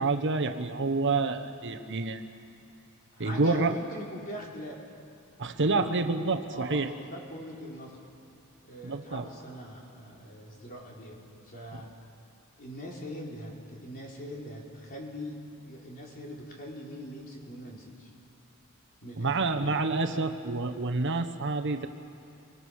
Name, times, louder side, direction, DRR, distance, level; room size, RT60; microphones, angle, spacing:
voice 1, 0.0-2.2 3.2-3.7 5.4-6.9 8.8-9.3 11.7-11.8 19.2-21.9, right 3 dB, 55° right, 7 dB, 1.1 m, -28 dB
voice 2, 3.1-4.8 6.5-8.0 8.6-11.9 12.6-18.1 19.0-19.8, equal, 40° left, -2 dB, 4.1 m, -42 dB
27.0 x 24.5 x 6.5 m, 2.6 s
head